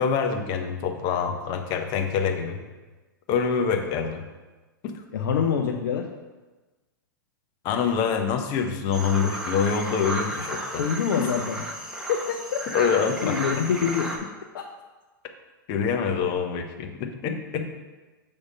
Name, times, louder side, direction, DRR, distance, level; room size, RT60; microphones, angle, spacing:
voice 1, 0.0-2.6 3.3-4.2 7.6-10.8 11.2-11.3 12.7-13.4 15.7-17.8, left 6 dB, 40° left, 5 dB, 0.9 m, -25 dB
voice 2, 5.1-6.1 10.8-11.6 12.1-12.6 13.2-14.2 14.5-14.6, left 7 dB, 70° left, 3 dB, 0.6 m, -25 dB
sound 1, 8.9-14.2, right 1 dB, 5° right, 1.0 m, -33 dB
6.4 x 3.5 x 5.4 m, 1.2 s
hypercardioid pair, 105°, 11 cm